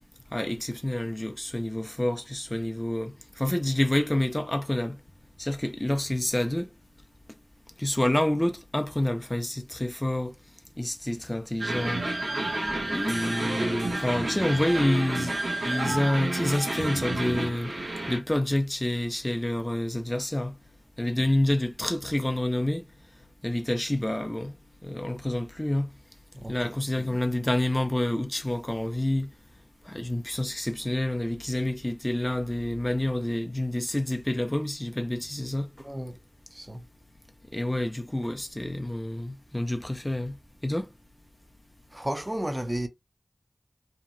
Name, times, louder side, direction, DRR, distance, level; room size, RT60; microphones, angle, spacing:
voice 1, 0.3-5.0 5.4-6.7 7.8-10.3 10.8-12.0 12.9-15.4 15.6-17.7 18.1-20.5 21.0-22.8 23.4-24.5 24.8-25.9 26.5-29.3 29.9-35.7 37.5-40.4 40.6-40.9, left 1 dB, 20° left, 0.4 m, -28 dB
sound 1, 11.6-18.2, right 2 dB, 85° right, 1.0 m, -30 dB
voice 2, 26.3-27.2 35.8-36.2 36.5-36.8 41.9-42.9, right 1 dB, 25° right, 0.6 m, -33 dB
2.8 x 2.1 x 2.5 m
cardioid pair, 40°, 0 cm